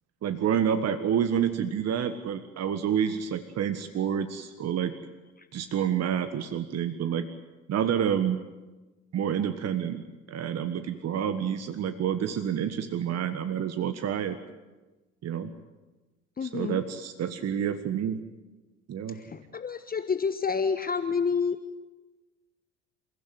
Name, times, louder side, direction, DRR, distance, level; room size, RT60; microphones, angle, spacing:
voice 1, 0.2-4.9 5.5-7.3 7.7-8.4 9.1-10.0 10.3-14.4 15.2-15.5 16.4-18.2 18.9-19.2, right 8 dB, 40° right, 10 dB, 1.5 m, -28 dB
voice 2, 16.4-16.8 19.1-21.6, left 5 dB, 25° left, 10 dB, 1.2 m, -29 dB
28.5 x 16.0 x 9.2 m, 1.2 s
figure-of-eight pair, 60°, 38 cm